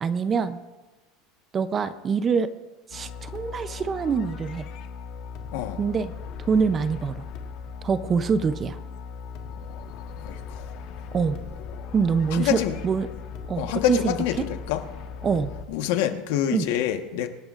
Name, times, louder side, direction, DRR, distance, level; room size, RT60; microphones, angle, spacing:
voice 1, 0.0-0.6 1.5-2.5 2.9-4.7 5.8-6.1 6.5-7.2 7.8-8.8 11.1-11.4 11.9-13.1 13.5-14.5 15.2-15.5 16.5-16.7, right 5 dB, 20° right, 12 dB, 0.6 m, -25 dB
sound 1, 2.9-15.7, left 6 dB, 55° left, 1.4 m, -38 dB
voice 2, 10.2-10.7 12.3-12.8 13.6-14.8 15.7-17.3, left 11 dB, 70° left, 7 dB, 1.3 m, -26 dB
26.5 x 11.5 x 2.5 m, 1.2 s
cardioid pair, 165°, 0 cm